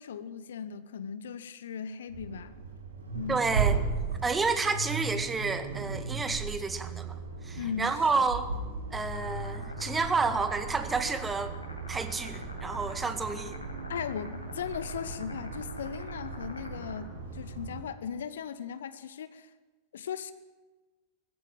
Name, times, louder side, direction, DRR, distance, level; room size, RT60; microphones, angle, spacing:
voice 1, 0.0-2.6 3.1-3.4 7.5-8.2 13.9-19.5 19.9-20.3, left 7 dB, 65° left, 14 dB, 1.1 m, -38 dB
Accelerating revving vroom, 2.1-17.8, right 5 dB, 70° right, 4.4 m, -36 dB
voice 2, 3.3-3.8 4.2-7.2 7.4-8.5 8.9-11.6 11.9-13.6, right 4 dB, 15° right, 9 dB, 1.9 m, -30 dB
sound 1, 9.1-17.0, left 1 dB, 85° left, 3.9 m, -45 dB
21.0 x 15.5 x 8.9 m, 1.3 s
figure-of-eight pair, 90°, 0 cm